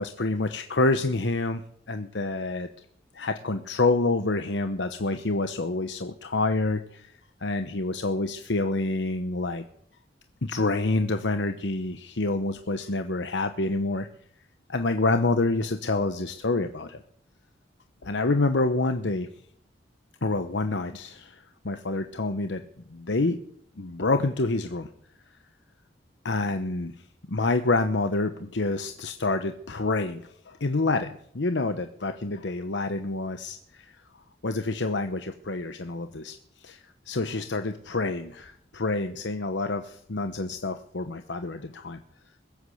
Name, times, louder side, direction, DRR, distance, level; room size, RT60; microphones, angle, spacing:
voice 1, 0.0-1.6 1.9-2.7 3.1-7.1 7.4-9.6 10.4-14.1 14.7-17.0 18.0-19.3 20.2-22.6 22.9-23.4 23.8-24.9 26.2-26.9 27.3-33.9 34.4-36.4 36.6-36.8 37.1-42.0, left 2 dB, 75° left, 8 dB, 1.0 m, -27 dB
21.0 x 8.3 x 7.8 m, 0.64 s
head